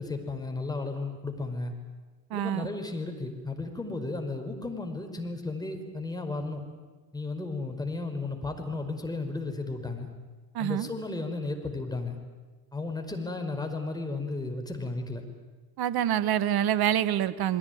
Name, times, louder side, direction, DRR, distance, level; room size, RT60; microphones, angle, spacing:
voice 1, 0.0-1.7 2.3-6.7 7.1-10.1 10.6-12.2 12.7-15.2, left 3 dB, 10° left, 4 dB, 5.2 m, -34 dB
voice 2, 2.3-2.7 10.5-10.9 15.8-17.6, right 11 dB, 45° right, 16 dB, 1.6 m, -26 dB
29.0 x 21.5 x 9.4 m, 1.3 s
hypercardioid pair, 70°, 50 cm